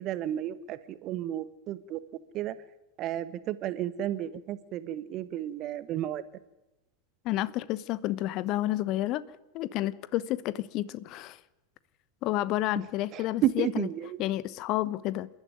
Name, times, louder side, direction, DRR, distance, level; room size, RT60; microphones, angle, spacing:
voice 1, 0.0-2.0 2.3-2.6 3.0-6.2 13.1-14.2, right 12 dB, 35° right, 14 dB, 1.4 m, -32 dB
voice 2, 7.2-9.2 9.5-11.4 12.2-13.9 14.2-15.3, left 15 dB, 40° left, 18 dB, 1.0 m, -30 dB
28.5 x 13.0 x 9.4 m, 1.0 s
figure-of-eight pair, 90°, 0 cm